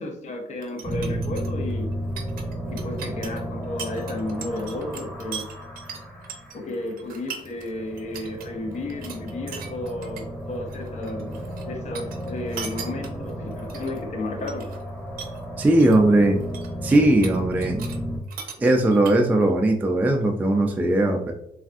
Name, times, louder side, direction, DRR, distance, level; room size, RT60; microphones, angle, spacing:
voice 1, 0.0-1.9 2.7-5.5 6.5-14.7, left 2 dB, 50° left, 3 dB, 0.7 m, -33 dB
sound 1, 0.6-7.7 8.0-8.5 8.7-10.2 10.5-11.7 11.9-14.0 14.4-14.9 15.2-16.0 16.3-18.0 18.3-19.5, right 7 dB, 80° right, 0.5 m, -39 dB
Birth Pad Wavy, 0.8-18.2, equal, 5° left, 0.9 m, -33 dB
voice 2, 15.6-16.4 16.8-17.9 18.6-21.3, right 1 dB, 10° right, 2 dB, 0.3 m, -19 dB
3.4 x 2.4 x 2.4 m, 0.80 s
cardioid pair, 95°, 15 cm